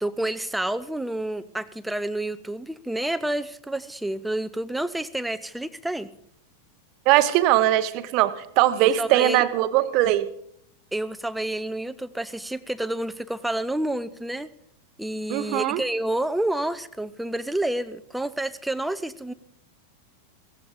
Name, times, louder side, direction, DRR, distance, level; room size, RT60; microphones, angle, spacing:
voice 1, 0.0-6.1 8.8-9.4 10.9-14.5 15.0-19.3, right 1 dB, 5° right, 11 dB, 0.6 m, -29 dB
voice 2, 7.1-10.3 15.3-15.8, right 14 dB, 40° right, 13 dB, 0.9 m, -20 dB
16.0 x 15.0 x 3.8 m, 0.71 s
figure-of-eight pair, 90°, 0 cm